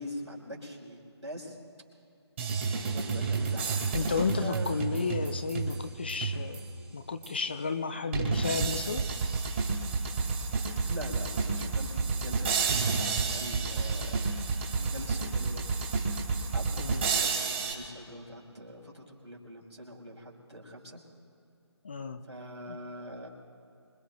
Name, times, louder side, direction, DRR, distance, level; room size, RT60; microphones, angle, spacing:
voice 1, 0.0-1.6 2.6-3.8 4.1-4.8 10.9-15.9 16.5-21.0 22.2-23.3, equal, 85° right, -1 dB, 4.5 m, -43 dB
sound 1, 2.4-6.8 7.2-7.3 8.1-17.7, right 4 dB, 25° right, 2.3 m, -30 dB
voice 2, 3.9-6.7 6.9-9.0 16.8-17.0 21.8-22.2 22.7-22.8, left 5 dB, 20° left, 9 dB, 0.4 m, -32 dB
26.0 x 22.0 x 2.3 m, 2.6 s
figure-of-eight pair, 150°, 14 cm